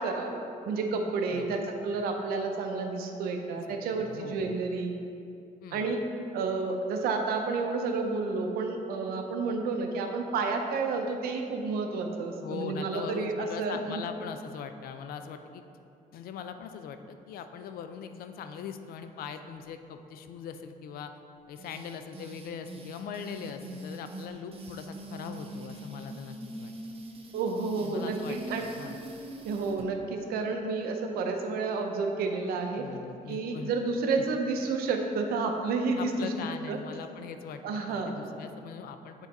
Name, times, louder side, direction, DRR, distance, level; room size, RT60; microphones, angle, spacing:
voice 1, 0.0-5.0 5.7-6.0 6.3-14.0 27.3-28.7 29.4-32.8 33.3-36.3 36.7-36.8 37.6-38.2, right 4 dB, 85° right, 4 dB, 0.6 m, -30 dB
voice 2, 1.3-1.7 3.5-4.6 5.6-5.9 12.4-15.6 16.1-21.2 21.5-26.7 27.8-29.0 32.8-33.7 34.2-34.3 36.0-39.3, left 7 dB, 75° left, 8 dB, 0.4 m, -41 dB
sound 1, 21.6-29.9, right 1 dB, 40° right, 0.8 m, -43 dB
7.3 x 3.9 x 4.0 m, 2.6 s
cardioid pair, 95°, 15 cm